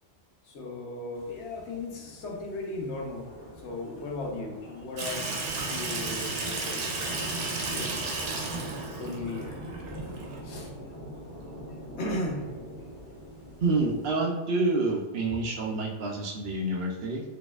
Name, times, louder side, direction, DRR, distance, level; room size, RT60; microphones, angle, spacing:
voice 1, 0.4-3.3 3.6-5.4 5.7-7.0 7.7-8.5 9.0-9.6 10.4-10.7 12.0-12.5, left 2 dB, 70° left, 0 dB, 1.0 m, -36 dB
sound 1, 1.1-14.1, equal, 25° left, 1.2 m, -43 dB
Water tap faucet / Sink (filling or washing), 5.0-10.4, right 3 dB, 85° right, 1.0 m, -33 dB
voice 2, 13.6-17.2, right 2 dB, 65° right, -1 dB, 0.8 m, -28 dB
4.1 x 2.8 x 2.3 m, 1.2 s
omnidirectional pair, 1.2 m